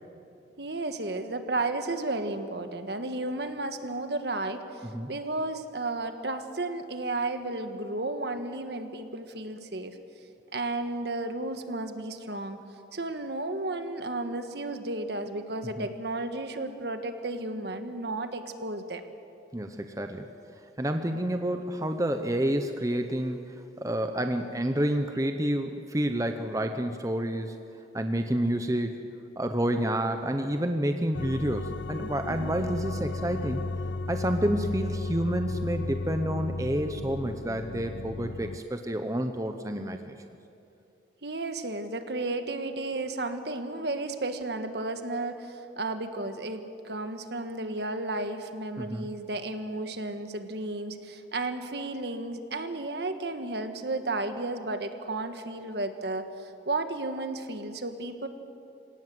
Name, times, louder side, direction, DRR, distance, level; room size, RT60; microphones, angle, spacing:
voice 1, 0.6-10.0 10.5-12.6 12.9-19.0 32.3-32.5 41.2-58.3, right 2 dB, 60° right, 8 dB, 1.5 m, -33 dB
voice 2, 19.5-20.3 20.8-27.6 27.9-29.0 29.4-33.6 34.1-40.2 48.8-49.1, right 1 dB, 15° right, 6 dB, 0.9 m, -29 dB
sound 1, 31.1-38.6, left 2 dB, 70° left, 0.5 m, -34 dB
27.5 x 17.5 x 7.7 m, 2.7 s
head